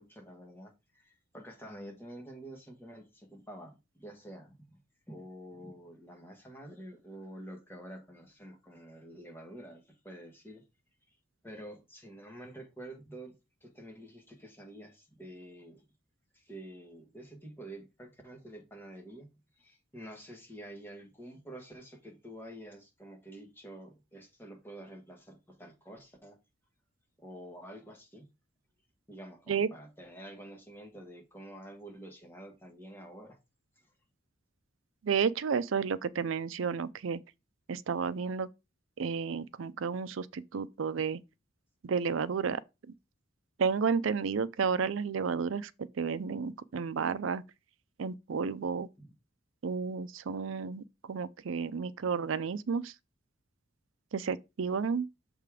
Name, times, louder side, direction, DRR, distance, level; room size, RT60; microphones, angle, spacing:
voice 1, 0.0-4.8 5.1-10.6 11.1-11.2 11.4-13.4 13.6-15.8 16.3-19.3 19.5-26.4 27.2-28.3 29.1-33.4 33.8-33.9 49.0-49.1, right 1 dB, 10° left, 1.6 m, -48 dB
voice 2, 35.0-37.2 37.7-38.5 39.0-41.2 41.8-42.6 43.6-47.4 48.0-48.9 49.6-52.9 54.1-55.1, right 5 dB, 80° right, 0.5 m, -31 dB
6.6 x 3.6 x 4.8 m
head